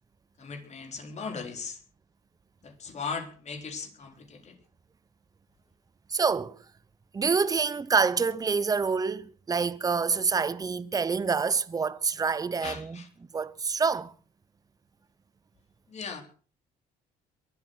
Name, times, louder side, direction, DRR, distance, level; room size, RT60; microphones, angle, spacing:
voice 1, 0.4-1.8 2.6-4.6 12.6-13.1 15.9-16.2, left 5 dB, 40° left, 3.9 m, -38 dB
voice 2, 6.1-6.6 7.1-13.0 13.3-14.1, right 5 dB, 20° right, 0.8 m, -27 dB
23.0 x 8.3 x 6.5 m
cardioid pair, 110°, 17 cm